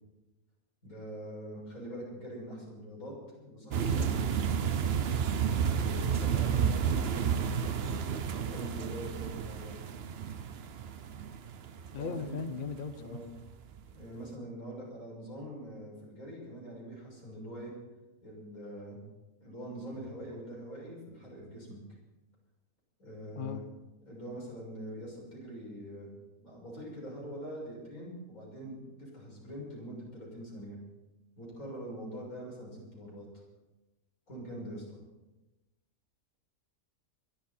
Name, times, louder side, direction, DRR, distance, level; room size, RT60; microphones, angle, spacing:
voice 1, 0.8-4.1 5.4-8.1 8.4-9.8 11.9-12.3 12.9-13.3 13.9-17.7 18.2-19.0 19.4-21.8 23.0-23.6 24.0-26.1 26.4-30.8 31.4-33.3 34.3-35.0, equal, 90° left, -3 dB, 7.1 m, -44 dB
sound 1, 3.7-12.8 13.3-13.5 13.8-13.9, right 7 dB, 55° right, 0.9 m, -31 dB
voice 2, 3.8-4.1 11.9-13.2 23.4-23.6, left 5 dB, 45° left, 10 dB, 0.9 m, -37 dB
22.5 x 12.0 x 4.3 m, 1.1 s
omnidirectional pair, 1.5 m